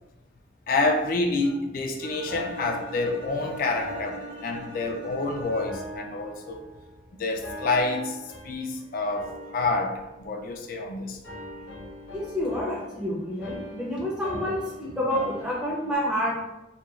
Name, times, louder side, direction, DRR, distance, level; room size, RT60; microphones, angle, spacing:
voice 1, 0.7-6.6 7.1-8.2 8.4-11.2, left 3 dB, 45° left, 3 dB, 0.3 m, -28 dB
Bowed string instrument, 2.0-6.0, right 2 dB, 75° right, 1.2 m, -43 dB
sound 1, 2.3-5.2 5.7-7.0 7.4-8.8 9.1-10.9 11.2-16.0, left 1 dB, 70° left, 0.7 m, -42 dB
voice 2, 12.1-16.3, equal, 5° right, -5 dB, 0.6 m, -28 dB
2.9 x 2.3 x 2.3 m, 0.98 s
head